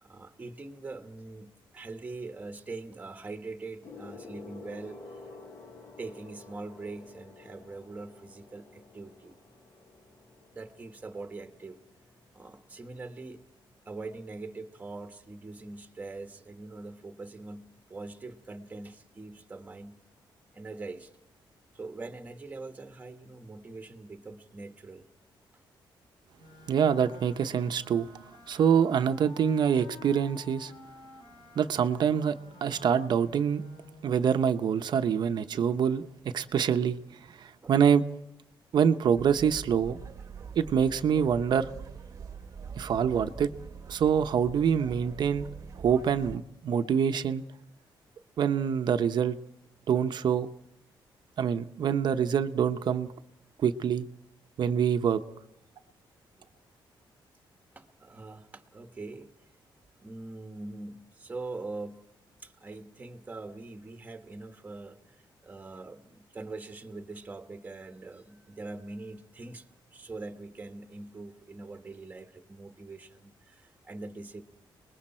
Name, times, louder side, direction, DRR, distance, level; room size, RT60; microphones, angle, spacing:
voice 1, 0.0-5.2 6.0-9.4 10.5-11.8 12.3-13.4 13.8-20.0 20.5-21.1 21.7-25.0 37.6-37.9 57.7-59.3 60.0-62.0 62.4-69.7 69.9-74.4, right 3 dB, 20° right, 1.4 m, -43 dB
Gong, 3.8-13.6 14.5-14.8, left 3 dB, 30° left, 1.3 m, -51 dB
Wind instrument woodwind instrument, 26.4-34.2, left 2 dB, 70° left, 3.2 m, -52 dB
voice 2, 26.7-28.1 28.5-30.7 31.6-32.4 32.6-33.6 34.0-37.0 37.4-38.0 38.7-40.0 40.6-41.7 42.8-43.5 43.9-45.5 45.8-47.4 48.4-49.4 49.9-50.5 51.4-53.1 53.6-54.1 54.6-55.2, right 7 dB, 55° right, 0.9 m, -25 dB
sound 1, 39.1-46.4, right 6 dB, 40° right, 1.2 m, -44 dB
30.0 x 21.0 x 4.4 m
wide cardioid pair, 160°, 9 cm